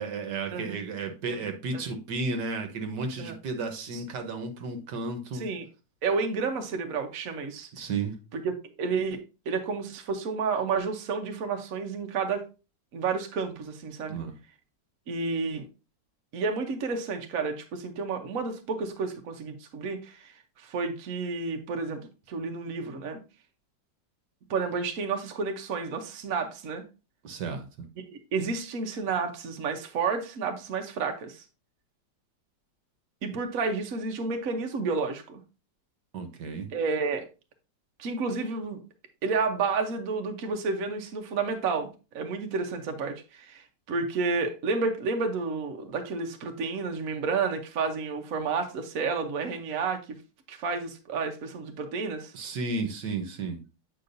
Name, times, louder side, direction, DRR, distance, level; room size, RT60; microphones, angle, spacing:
voice 1, 0.0-5.5 7.8-8.1 14.1-14.3 27.2-27.7 36.1-36.7 52.3-53.6, right 3 dB, 70° right, 1.6 m, -33 dB
voice 2, 0.5-0.8 1.3-1.4 1.7-1.8 3.2-3.4 3.9-4.0 5.3-5.7 6.0-7.7 8.3-12.5 12.9-14.2 15.1-15.7 16.3-23.2 24.5-26.8 28.1-31.4 33.2-35.4 36.7-37.3 38.0-38.8 39.2-50.2 50.5-52.3, right 4 dB, 55° right, 1.2 m, -31 dB
8.3 x 5.6 x 2.6 m
omnidirectional pair, 1.9 m